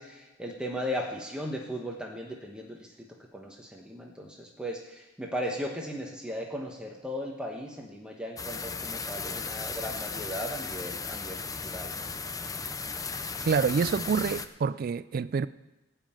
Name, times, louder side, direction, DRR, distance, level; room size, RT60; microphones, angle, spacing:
voice 1, 0.0-2.9 3.3-12.1, equal, 5° right, 1.2 m, -37 dB
sound 1, 8.4-14.5, left 4 dB, 20° left, 0.6 m, -36 dB
voice 2, 13.5-15.5, right 6 dB, 50° right, 0.3 m, -27 dB
16.5 x 5.7 x 8.8 m
head